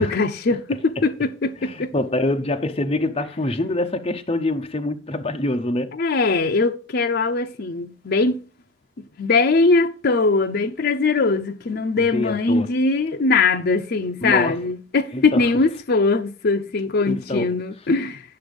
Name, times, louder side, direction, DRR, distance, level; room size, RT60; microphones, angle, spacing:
voice 1, 0.0-1.9 5.9-8.4 9.2-18.2, left 3 dB, 55° left, 0.6 m, -21 dB
voice 2, 1.6-5.9 12.1-12.7 14.2-14.6 15.1-15.5 17.1-17.6, left 2 dB, 30° left, 0.8 m, -25 dB
9.8 x 6.1 x 5.1 m
head